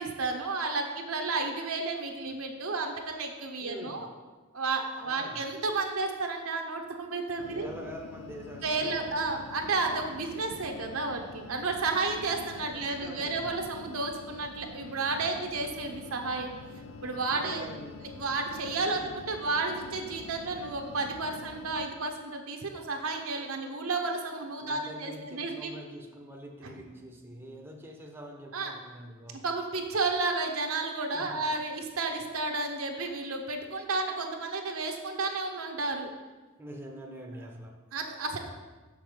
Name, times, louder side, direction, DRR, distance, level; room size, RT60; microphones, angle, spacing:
voice 1, 0.0-4.1 4.5-7.7 8.6-16.5 17.0-17.6 18.0-25.7 26.6-26.7 28.5-28.7 29.4-36.1 37.9-38.5, right 3 dB, 75° right, 3 dB, 1.0 m, -32 dB
voice 2, 3.6-4.0 5.0-5.5 7.5-9.1 12.7-13.6 17.3-18.0 18.8-19.1 21.2-21.3 24.6-29.4 31.1-31.5 36.6-37.8, equal, 10° right, 2 dB, 0.7 m, -45 dB
sound 1, 7.4-21.9, left 4 dB, 85° left, 0.5 m, -46 dB
6.6 x 5.8 x 5.1 m, 1.3 s
head